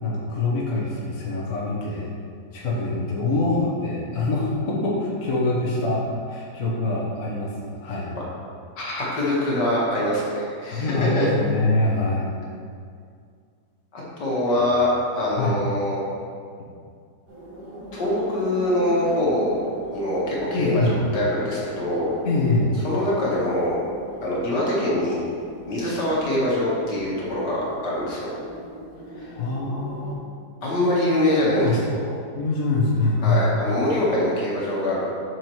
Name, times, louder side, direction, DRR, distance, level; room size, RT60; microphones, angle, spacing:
voice 1, 0.0-2.1 2.5-8.1 10.7-12.3 14.6-14.7 15.4-15.6 20.5-21.0 22.2-22.8 29.3-30.2 31.6-31.8 32.3-33.5, left 2 dB, 55° left, -5 dB, 1.5 m, -24 dB
voice 2, 8.8-11.3 13.9-16.0 17.9-19.6 19.9-22.2 22.8-23.8 24.2-25.2 25.7-28.4 29.2-29.3 30.6-32.1 33.2-35.1, left 1 dB, 80° left, -5 dB, 2.1 m, -24 dB
sound 1, 17.3-30.1, right 1 dB, 70° right, 2.6 m, -39 dB
8.1 x 6.0 x 3.1 m, 2.2 s
omnidirectional pair, 1.8 m